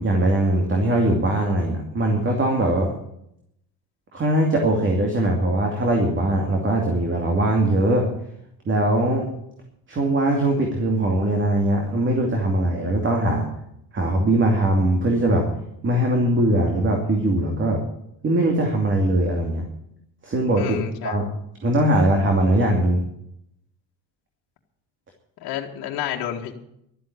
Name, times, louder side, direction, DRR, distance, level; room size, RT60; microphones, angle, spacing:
voice 1, 0.0-2.9 4.1-8.0 8.7-9.3 9.9-13.5 13.9-15.5 15.8-17.8 18.2-19.6 20.2-20.8 21.0-21.3 21.6-23.0, right 1 dB, 30° right, 1 dB, 2.6 m, -21 dB
voice 2, 20.6-21.3 25.4-26.5, left 10 dB, 65° left, 0 dB, 1.9 m, -30 dB
12.5 x 7.7 x 9.6 m, 0.76 s
cardioid pair, 110°, 39 cm